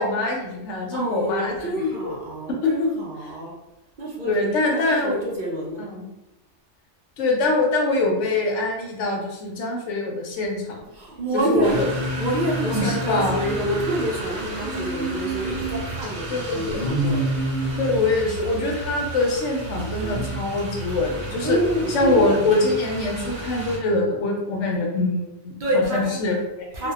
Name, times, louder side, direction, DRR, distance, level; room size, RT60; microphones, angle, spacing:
voice 1, 0.0-2.2 2.6-2.9 4.2-5.2 5.8-6.0 7.2-10.8 11.3-11.9 12.7-13.5 16.3-16.9 17.8-21.6 21.9-26.9, left 2 dB, 75° left, 0 dB, 0.9 m, -24 dB
voice 2, 0.9-3.5 4.0-5.8 10.9-11.9 12.2-17.3 21.4-22.4 25.6-26.1 26.7-26.9, right 1 dB, 60° right, -4 dB, 0.5 m, -27 dB
Singing, 11.5-14.0 14.6-15.8 16.7-18.0 20.0-20.3, right 1 dB, 50° left, 0.4 m, -28 dB
sound 1, 11.6-23.8, right 2 dB, 85° right, 1.0 m, -34 dB
2.6 x 2.2 x 2.3 m, 0.93 s
omnidirectional pair, 1.2 m